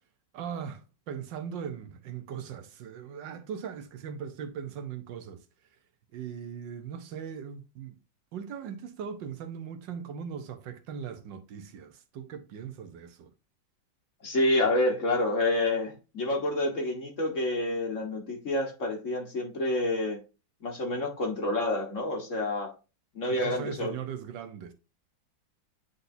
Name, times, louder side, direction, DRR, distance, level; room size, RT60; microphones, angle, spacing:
voice 1, 0.3-5.4 6.1-8.0 8.3-13.3 23.3-24.7, right 7 dB, 75° right, 1.6 m, -39 dB
voice 2, 14.2-20.2 20.6-22.7 23.2-23.9, left 1 dB, 45° left, 1.8 m, -28 dB
9.4 x 4.0 x 2.7 m
omnidirectional pair, 2.0 m